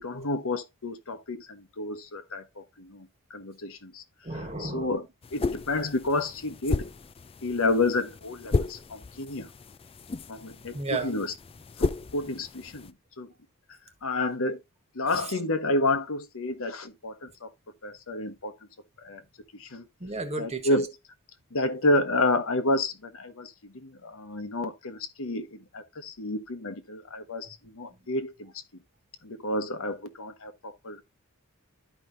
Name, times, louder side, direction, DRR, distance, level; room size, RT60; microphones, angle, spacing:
voice 1, 0.0-4.0 4.6-5.1 5.3-6.9 7.4-9.5 10.3-11.3 11.8-13.3 14.0-14.6 14.9-17.5 17.8-18.5 19.0-19.2 19.5-19.9 20.4-20.9 21.5-28.5 29.2-31.0, left 2 dB, 65° left, 1.1 m, -30 dB
voice 2, 4.2-4.9 10.7-11.1 20.0-20.8, right 3 dB, 30° right, 1.4 m, -33 dB
sound 1, 5.2-12.9, left 3 dB, 25° left, 0.4 m, -34 dB
12.0 x 5.1 x 2.6 m
head